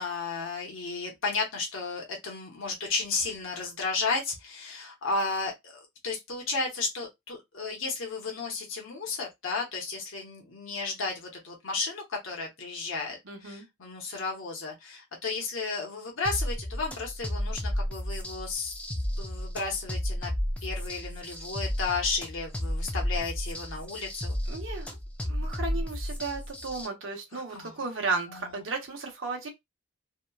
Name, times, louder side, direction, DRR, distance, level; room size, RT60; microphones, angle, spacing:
voice 1, 0.0-18.8 19.2-20.3 20.6-24.4 27.3-28.6, left 4 dB, 70° left, 0.8 m, -33 dB
voice 2, 13.3-13.7 24.5-25.0 25.2-29.5, right 4 dB, 70° right, 0.8 m, -34 dB
sound 1, 16.3-26.9, equal, 5° left, 0.3 m, -33 dB
2.9 x 2.2 x 2.2 m
head